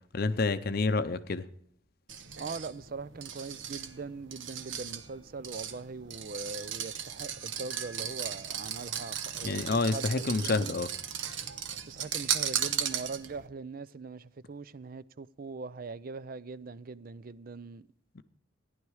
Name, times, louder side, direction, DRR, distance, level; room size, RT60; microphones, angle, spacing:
voice 1, 0.1-1.5 9.4-10.9 18.2-18.3, left 3 dB, 50° left, 0.6 m, -28 dB
sound 1, 2.1-13.5, right 8 dB, 70° right, 1.1 m, -36 dB
voice 2, 2.4-10.7 11.9-17.9, right 4 dB, 45° right, 0.5 m, -41 dB
15.0 x 10.5 x 4.8 m
head